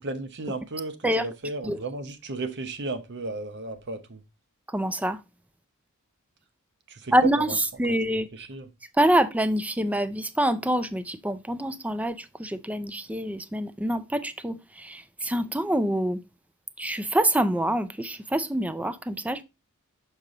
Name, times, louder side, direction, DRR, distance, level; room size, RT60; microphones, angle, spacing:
voice 1, 0.0-4.2 6.9-7.6 8.1-8.7, right 3 dB, 50° right, 0.9 m, -34 dB
voice 2, 4.7-5.2 7.1-7.5 7.8-8.3 9.0-16.2 16.8-19.4, right 1 dB, 5° right, 0.4 m, -26 dB
6.7 x 4.6 x 3.8 m
head